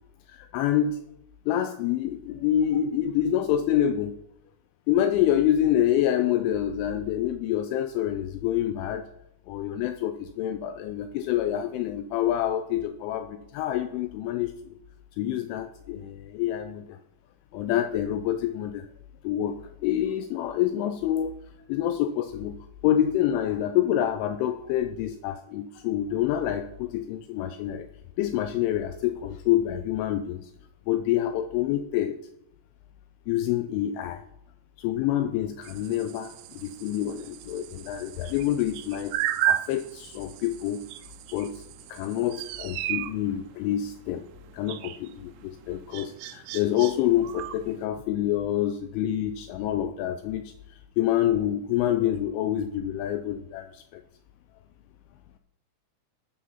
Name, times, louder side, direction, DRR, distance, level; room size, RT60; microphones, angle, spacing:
voice 1, 0.3-1.0 1.5-4.1 4.9-9.1 9.5-14.8 15.2-17.0 17.5-18.9 19.2-21.3 21.7-22.6 22.8-27.9 28.2-30.5 30.9-32.2 33.3-34.2 34.8-40.8 41.3-41.6 41.9-44.3 44.5-54.0, left 11 dB, 80° left, 9 dB, 2.9 m, -27 dB
sound 1, 35.6-47.8, right 13 dB, 80° right, 2.9 m, -35 dB
13.5 x 8.4 x 5.7 m, 0.79 s
omnidirectional pair, 5.9 m